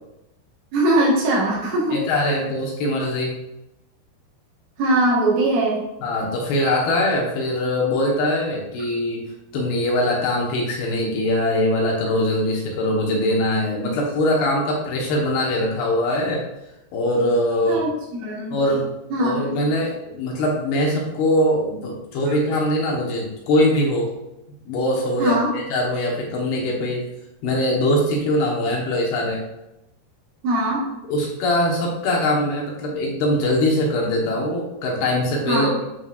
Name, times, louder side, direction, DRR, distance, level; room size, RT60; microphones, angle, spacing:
voice 1, 0.7-2.3 4.8-5.8 17.7-18.6 19.1-19.5 22.3-22.4 25.2-25.5 30.4-30.8 35.5-35.8, right 1 dB, 75° right, -5 dB, 4.0 m, -21 dB
voice 2, 1.9-3.4 6.0-9.3 9.5-16.4 16.9-17.8 18.5-18.9 19.2-24.1 24.7-27.1 27.4-29.4 31.1-35.8, left 1 dB, 65° left, -2 dB, 2.8 m, -22 dB
11.0 x 5.3 x 2.5 m, 0.90 s
omnidirectional pair, 5.9 m